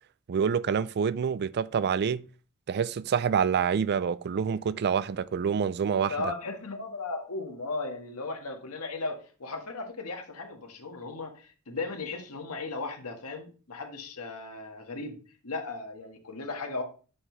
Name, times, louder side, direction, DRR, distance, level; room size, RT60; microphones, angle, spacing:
voice 1, 0.3-2.2 2.7-6.1, right 7 dB, 50° right, 0.4 m, -27 dB
voice 2, 5.9-15.2 15.4-16.8, left 3 dB, 90° left, 1.6 m, -36 dB
6.3 x 4.8 x 4.5 m
head